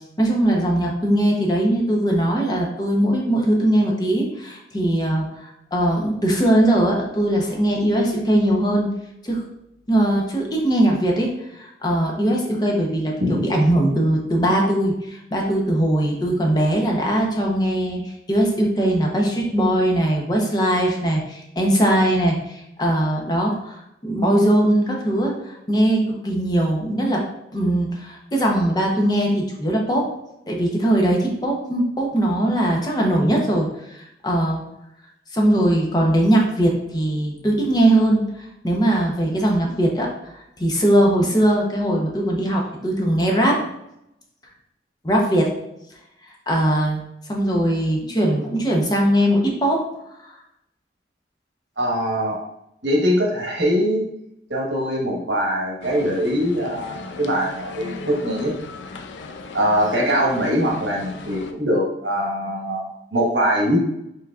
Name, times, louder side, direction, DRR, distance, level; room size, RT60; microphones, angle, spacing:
voice 1, 0.2-8.9 9.2-9.4 9.9-27.2 27.5-30.1 30.5-34.6 35.3-40.1 40.6-43.6 45.0-45.5 46.5-47.0 47.3-49.8, right 1 dB, 25° left, -1 dB, 0.7 m, -20 dB
voice 2, 51.8-52.4 52.8-54.1 54.5-58.5 59.5-63.8, equal, 80° right, -1 dB, 1.2 m, -22 dB
sound 1, 55.8-61.5, left 3 dB, 90° left, 0.4 m, -37 dB
4.6 x 3.9 x 2.4 m, 0.81 s
head